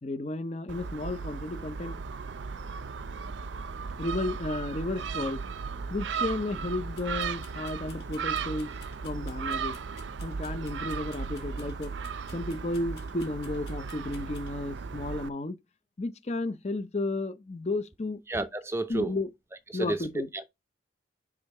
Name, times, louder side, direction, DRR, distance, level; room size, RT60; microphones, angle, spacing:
voice 1, 0.0-2.0 4.0-5.4 5.9-8.7 9.0-9.8 10.2-11.9 12.3-15.6 16.0-18.2 18.9-19.3 19.7-20.3, left 2 dB, 35° left, 0.5 m, -33 dB
Gull seagull, 0.7-15.3, right 5 dB, 85° right, 0.5 m, -36 dB
sound 1, 6.9-14.5, left 8 dB, 65° left, 1.1 m, -57 dB
voice 2, 18.3-19.1 19.7-20.5, right 2 dB, 15° right, 0.4 m, -31 dB
5.0 x 3.5 x 5.4 m
head